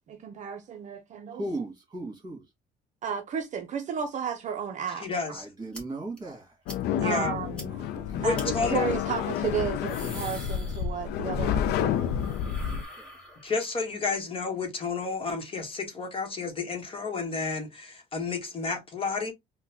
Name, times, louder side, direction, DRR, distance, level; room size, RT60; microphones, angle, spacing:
voice 1, 0.1-1.4 3.0-5.1 7.0-7.7 8.2-12.1, right 7 dB, 45° right, 0.5 m, -33 dB
voice 2, 1.3-2.4 5.3-6.5 7.8-8.0 11.8-12.0 12.4-13.1, right 2 dB, 25° right, 1.8 m, -38 dB
voice 3, 5.0-5.4 7.0-7.4 8.1-8.9 13.4-19.3, left 4 dB, 30° left, 1.0 m, -31 dB
sound 1, 5.7-5.8 6.2-6.3 6.7-6.8 7.1-7.2 7.6-7.7 8.3-8.5 9.6-11.3 11.6-13.7, equal, 5° left, 1.3 m, -44 dB
sound 2, 6.7-12.8, left 9 dB, 75° left, 0.4 m, -29 dB
3.7 x 2.2 x 2.7 m
cardioid pair, 110°, 17 cm